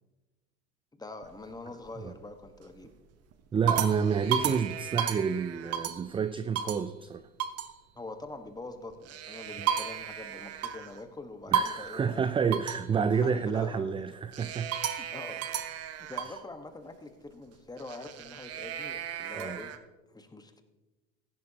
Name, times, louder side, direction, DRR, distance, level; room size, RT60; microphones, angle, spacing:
voice 1, 0.9-3.0 7.9-12.2 13.1-14.1 15.0-15.4 15.9-19.7 20.1-20.6, left 2 dB, 10° left, 1.3 m, -44 dB
Vaches dans le pré, 1.2-1.9 2.5-2.9 3.3-6.1 6.6-6.9 7.4-7.7 8.9-11.0 11.5-12.0 12.5-12.9 14.3-16.4 17.8-19.8, right 8 dB, 45° right, 1.1 m, -33 dB
voice 2, 3.5-7.2 11.5-14.8 16.3-16.4 19.3-19.6, right 6 dB, 15° right, 0.4 m, -29 dB
16.0 x 11.0 x 2.9 m
hypercardioid pair, 85°, 35 cm